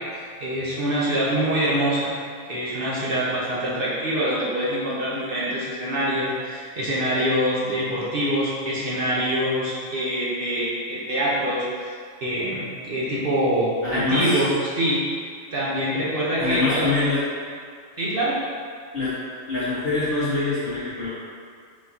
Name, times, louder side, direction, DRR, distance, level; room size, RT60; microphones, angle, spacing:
voice 1, 0.1-2.1 2.5-11.9 12.2-15.0 15.5-16.8 18.0-18.4, equal, 50° right, -7 dB, 0.9 m, -25 dB
voice 2, 13.8-14.4 16.4-17.2 18.9-19.2 19.5-21.1, left 3 dB, 45° left, -15 dB, 1.4 m, -24 dB
4.4 x 4.4 x 2.7 m, 2.1 s
omnidirectional pair, 1.4 m